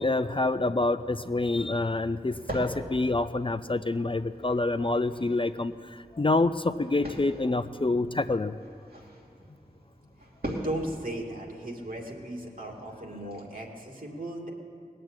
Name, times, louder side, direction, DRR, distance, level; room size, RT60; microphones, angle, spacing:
voice 1, 0.0-8.6, left 2 dB, 35° left, 11 dB, 0.4 m, -27 dB
sound 1, 1.0-13.4, equal, 75° right, 3.0 m, -43 dB
voice 2, 10.4-14.5, right 1 dB, 60° right, -1 dB, 2.5 m, -36 dB
19.0 x 7.7 x 8.9 m, 2.6 s
wide cardioid pair, 45°, 16 cm